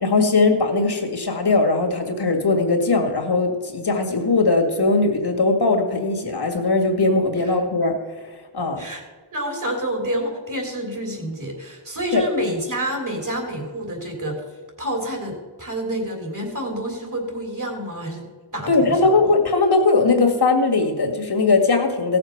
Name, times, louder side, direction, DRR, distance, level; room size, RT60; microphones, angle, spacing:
voice 1, 0.0-8.0 8.2-8.8 12.1-12.2 18.7-22.2, left 3 dB, 55° left, 3 dB, 2.1 m, -19 dB
voice 2, 9.3-14.4 14.8-18.3 18.5-19.1, equal, 40° right, 2 dB, 3.4 m, -28 dB
16.5 x 7.0 x 5.9 m, 1.4 s
wide cardioid pair, 80°, 48 cm